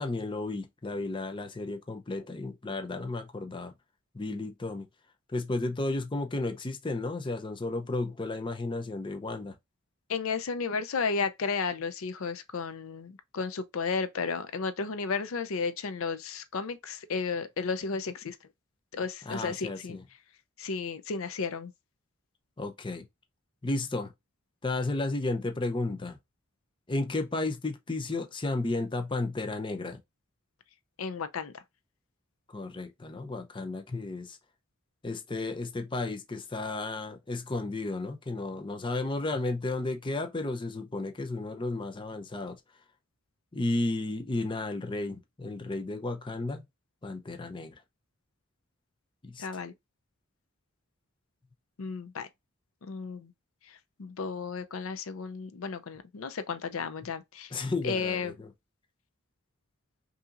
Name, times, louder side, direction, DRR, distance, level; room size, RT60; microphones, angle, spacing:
voice 1, 0.0-3.7 4.1-4.9 5.3-9.5 19.3-20.0 22.6-23.1 23.6-24.1 24.6-26.2 26.9-30.0 32.5-34.4 35.0-42.6 43.5-46.6 47.0-47.7 49.2-49.5 57.5-58.5, left 2 dB, 25° left, 0.5 m, -33 dB
voice 2, 10.1-18.4 18.9-20.0 20.6-21.7 31.0-31.6 49.4-49.7 51.8-52.3 52.8-53.3 53.7-57.6 57.8-58.4, left 5 dB, 75° left, 0.5 m, -33 dB
5.4 x 2.8 x 2.4 m
head